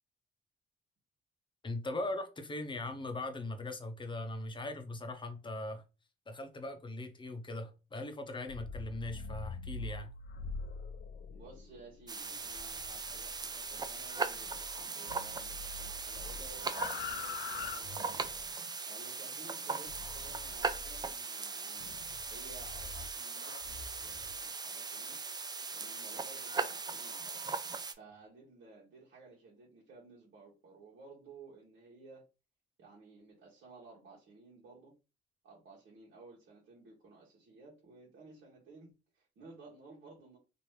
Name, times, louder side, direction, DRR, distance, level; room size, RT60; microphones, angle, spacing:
voice 1, 1.6-5.8 6.3-10.1, left 2 dB, 25° left, 0.7 m, -40 dB
sound 1, 8.3-14.8 15.1-18.5 19.9-21.1 21.8-24.4, left 5 dB, 60° left, 0.4 m, -45 dB
voice 2, 11.3-18.2 18.9-22.0 22.3-25.2 25.7-27.5 27.9-32.2 32.8-34.9 35.4-40.4, right 3 dB, 70° right, 1.3 m, -55 dB
sound 2, 12.1-27.9, right 4 dB, 20° right, 0.4 m, -39 dB
3.0 x 2.6 x 3.2 m
cardioid pair, 90°, 20 cm